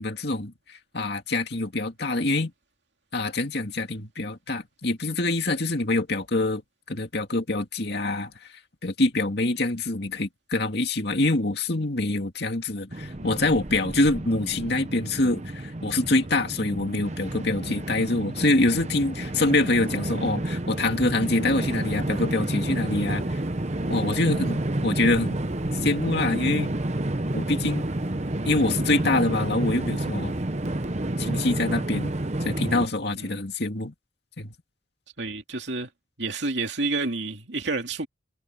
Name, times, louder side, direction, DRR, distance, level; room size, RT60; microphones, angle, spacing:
voice 1, 0.0-2.5 3.1-6.6 6.9-8.3 8.8-23.4 23.9-25.4 25.8-26.7 27.3-27.8 28.4-30.4 31.2-32.1 32.4-33.9 34.4-34.5, left 2 dB, 55° left, 2.5 m, -25 dB
Train, 12.9-32.9, right 1 dB, 35° right, 1.0 m, -30 dB
voice 2, 35.2-35.9 36.2-38.1, right 3 dB, 65° right, 2.7 m, -29 dB
head